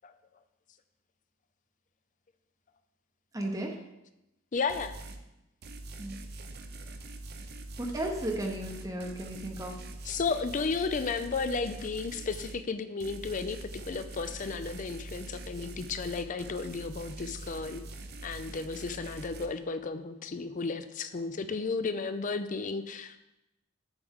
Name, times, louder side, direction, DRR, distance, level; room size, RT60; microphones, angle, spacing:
voice 1, 3.3-3.8 6.0-6.2 7.8-9.8, right 1 dB, 15° right, 1 dB, 0.8 m, -34 dB
voice 2, 4.5-4.9 10.0-13.6 13.9-17.8 18.2-23.2, left 4 dB, 35° left, 10 dB, 0.4 m, -33 dB
sound 1, 4.7-5.2 5.6-12.6 13.0-19.5, right 2 dB, 50° right, 0.7 m, -44 dB
8.0 x 7.4 x 3.6 m, 0.93 s
head